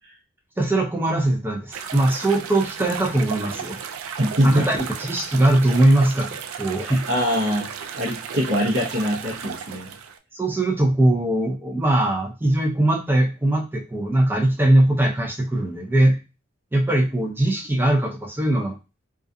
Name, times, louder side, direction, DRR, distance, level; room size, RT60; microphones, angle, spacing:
voice 1, 0.6-3.8 4.4-7.1 10.3-16.2 16.7-18.8, right 1 dB, 10° right, 2 dB, 0.4 m, -20 dB
sound 1, 1.7-10.2, right 7 dB, 85° right, 0.3 m, -34 dB
voice 2, 4.2-4.7 6.8-7.7 8.0-9.9, equal, 60° right, -4 dB, 0.7 m, -23 dB
2.4 x 2.2 x 2.6 m, 0.29 s
head